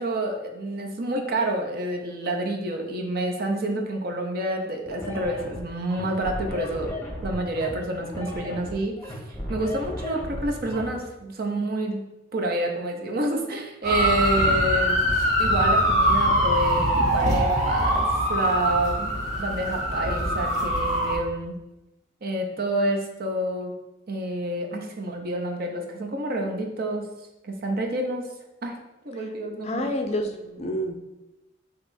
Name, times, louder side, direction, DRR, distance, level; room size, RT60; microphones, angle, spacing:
voice 1, 0.0-6.9 7.2-9.1 9.5-12.0 12.3-15.0 15.4-21.6 22.2-23.7 24.1-27.1 27.4-28.3 28.6-28.8 29.0-29.9, right 1 dB, 55° right, 2 dB, 0.7 m, -28 dB
sound 1, 4.9-10.9, left 1 dB, 15° left, 0.8 m, -35 dB
sound 2, 13.8-21.2, equal, 40° right, 1.1 m, -23 dB
voice 2, 29.6-30.9, left 1 dB, 35° left, 5 dB, 0.4 m, -28 dB
6.6 x 2.9 x 2.6 m, 0.97 s
head